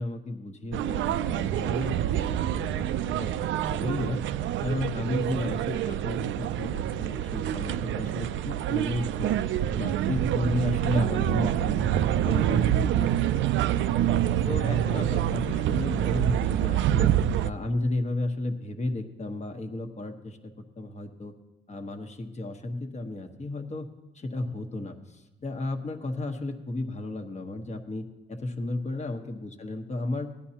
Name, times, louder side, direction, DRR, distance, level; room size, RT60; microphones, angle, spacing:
voice 1, 0.0-4.2 4.6-9.4 9.7-14.0 14.4-17.1 17.4-21.4 21.7-23.9 24.1-30.3, left 2 dB, 35° left, 5 dB, 1.2 m, -33 dB
sound 1, 0.7-17.5, right 11 dB, 65° right, 0.4 m, -26 dB
17.0 x 10.5 x 2.9 m, 1.0 s
cardioid pair, 85°, 21 cm